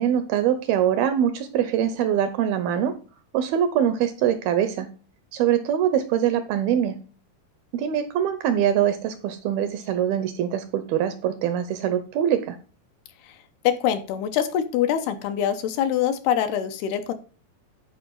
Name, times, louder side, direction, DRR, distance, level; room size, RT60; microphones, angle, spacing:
voice 1, 0.0-2.9 3.3-4.9 5.3-7.0 7.7-12.6, right 9 dB, 80° right, 11 dB, 2.3 m, -23 dB
voice 2, 13.6-17.1, left 9 dB, 75° left, 8 dB, 2.7 m, -24 dB
12.0 x 4.9 x 5.2 m, 0.36 s
omnidirectional pair, 4.9 m